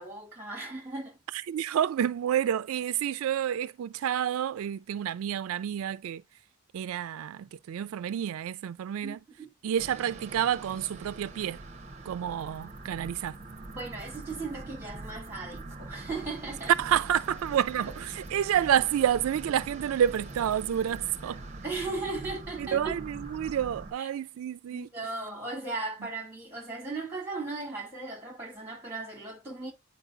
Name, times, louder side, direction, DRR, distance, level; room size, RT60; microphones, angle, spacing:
voice 1, 0.0-1.2 9.0-9.5 13.7-16.7 17.8-17.9 21.6-23.0 24.0-24.1 24.7-29.7, right 3 dB, 10° right, 2.4 m, -37 dB
voice 2, 1.3-6.2 6.7-9.2 9.6-11.6 12.1-13.4 16.8-21.4 22.6-24.9, right 9 dB, 80° right, 0.3 m, -29 dB
sound 1, 9.8-23.9, right 2 dB, 35° right, 0.7 m, -43 dB
9.1 x 4.5 x 2.5 m
head